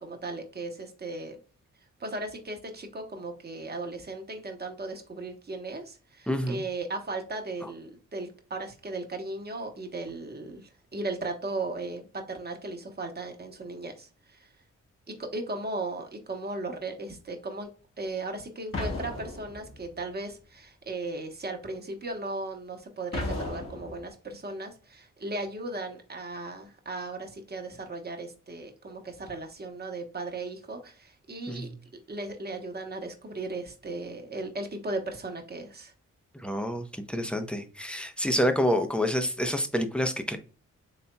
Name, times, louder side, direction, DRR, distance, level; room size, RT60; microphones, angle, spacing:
voice 1, 0.0-1.4 2.0-14.5 15.1-17.7 18.0-31.7 32.1-35.9, right 2 dB, 30° right, 3 dB, 1.1 m, -36 dB
voice 2, 6.3-6.6 31.5-31.8 36.3-40.4, equal, 5° left, 7 dB, 0.7 m, -28 dB
sound 1, 18.7-20.0 23.1-24.1, left 2 dB, 45° left, 1.5 m, -34 dB
4.1 x 3.4 x 2.2 m, 0.35 s
cardioid pair, 70°, 31 cm